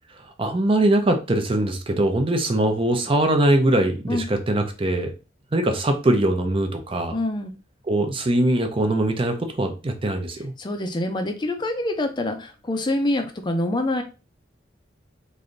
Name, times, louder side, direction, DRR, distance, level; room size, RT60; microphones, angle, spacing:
voice 1, 0.4-5.1 5.5-7.2 7.9-10.5, right 1 dB, 30° right, 5 dB, 0.6 m, -22 dB
voice 2, 7.1-7.5 10.6-14.0, left 1 dB, 25° left, 6 dB, 0.5 m, -25 dB
3.2 x 2.6 x 3.8 m, 0.32 s
head